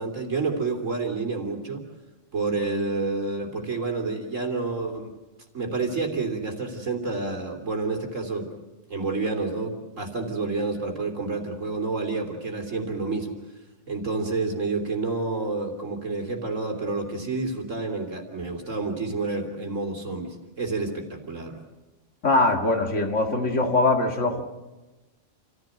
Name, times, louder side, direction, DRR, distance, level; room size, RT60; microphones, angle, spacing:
voice 1, 0.0-1.8 2.3-5.1 5.5-8.5 8.9-13.3 13.9-21.6, right 3 dB, 60° right, 3 dB, 3.6 m, -29 dB
voice 2, 22.2-24.4, left 2 dB, 55° left, 3 dB, 2.4 m, -22 dB
28.5 x 15.0 x 7.8 m, 1.1 s
omnidirectional pair, 1.5 m